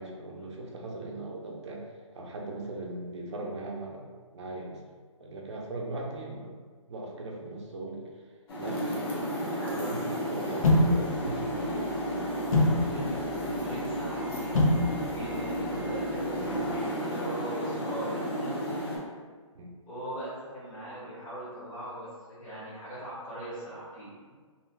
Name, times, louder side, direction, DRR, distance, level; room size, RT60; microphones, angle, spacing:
voice 1, 0.0-1.9 2.1-4.8 5.2-6.6 6.9-8.1 8.5-11.7 19.5-19.7, right 2 dB, 60° right, -1 dB, 0.7 m, -39 dB
sound 1, 8.5-19.0, equal, 50° left, 0.8 m, -32 dB
voice 2, 9.6-9.9 10.3-10.6 12.3-12.4 12.8-14.6 15.1-18.9 19.9-24.3, right 1 dB, 15° left, -9 dB, 0.8 m, -40 dB
sound 2, 10.6-16.7, left 1 dB, 85° left, 0.7 m, -29 dB
2.7 x 2.2 x 3.2 m, 1.5 s
hypercardioid pair, 155°, 17 cm